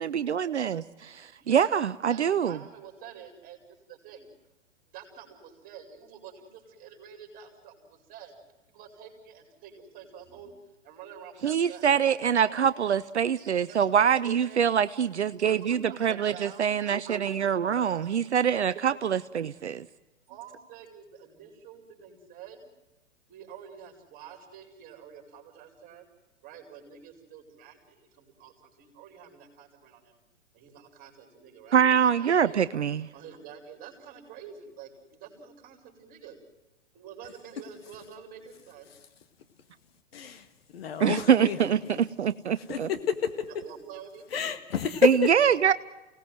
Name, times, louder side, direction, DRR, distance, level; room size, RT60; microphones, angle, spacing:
voice 1, 0.0-2.6 11.4-19.8 31.7-33.1 41.0-42.9 45.3-45.7, right 8 dB, 65° right, 14 dB, 0.7 m, -25 dB
voice 2, 2.1-4.3 4.9-8.3 8.7-12.7 13.7-13.8 14.4-14.7 15.5-16.8 17.0-18.1 18.9-19.0 20.3-22.6 23.3-26.0 26.4-30.2 30.5-32.6 33.1-36.4 36.9-38.9 43.6-44.3, right 8 dB, 25° right, 4 dB, 5.0 m, -48 dB
voice 3, 40.1-42.0 42.5-43.2 44.3-45.3, left 5 dB, 55° left, 8 dB, 1.9 m, -29 dB
29.0 x 18.0 x 7.8 m, 1.1 s
figure-of-eight pair, 110°, 37 cm